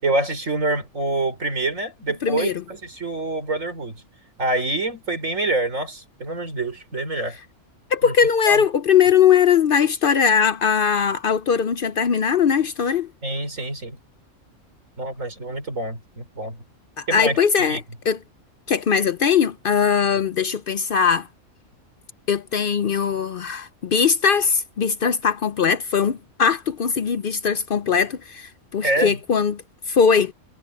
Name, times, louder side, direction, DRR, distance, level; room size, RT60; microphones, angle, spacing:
voice 1, 0.0-3.9 4.4-7.4 8.0-8.1 8.4-8.6 13.2-14.0 15.0-16.6 17.1-17.4 17.7-17.8 28.8-29.2, right 2 dB, 85° right, 4.9 m, -26 dB
voice 2, 2.2-2.6 7.9-13.1 17.0-17.8 18.1-18.2 18.7-21.3 22.3-29.6 29.9-30.3, left 7 dB, 55° left, 0.7 m, -20 dB
omnidirectional pair, 1.3 m